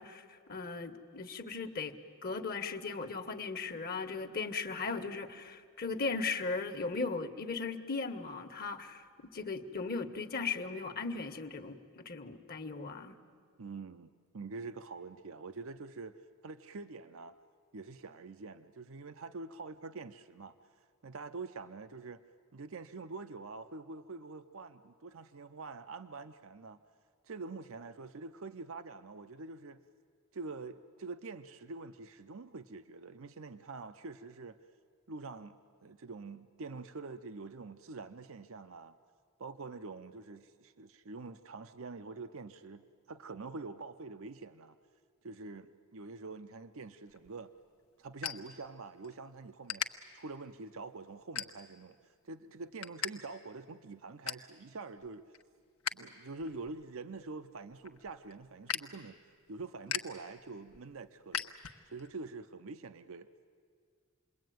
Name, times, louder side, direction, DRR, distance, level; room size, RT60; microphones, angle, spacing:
voice 1, 0.0-1.9 2.2-9.0 9.3-13.2, left 4 dB, 45° left, 7 dB, 1.4 m, -37 dB
voice 2, 13.6-17.4 17.7-20.6 21.0-22.2 22.5-26.8 27.2-29.8 30.3-34.6 35.1-39.0 39.4-44.8 45.2-47.5 48.0-49.9 50.1-52.0 52.2-55.3 55.9-59.2 59.5-61.5 61.9-63.3, right 3 dB, 65° right, 10 dB, 0.7 m, -45 dB
sound 1, 47.1-49.2 49.4-49.9 50.5-50.7 51.2-51.9 52.3-53.1 53.4-53.5 53.9-54.5 55.0-55.9 56.3-62.1, left 8 dB, 80° left, 1.1 m, -40 dB
28.0 x 21.5 x 9.3 m, 2.1 s
head